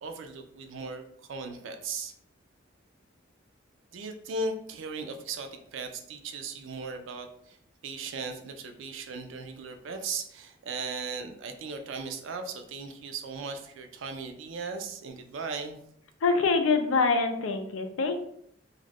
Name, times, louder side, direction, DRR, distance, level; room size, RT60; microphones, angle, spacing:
voice 1, 0.0-2.1 3.9-7.6 7.8-15.8, right 4 dB, 75° right, 6 dB, 0.4 m, -37 dB
voice 2, 16.2-18.2, left 4 dB, 85° left, 6 dB, 0.4 m, -25 dB
2.4 x 2.1 x 3.3 m, 0.68 s
head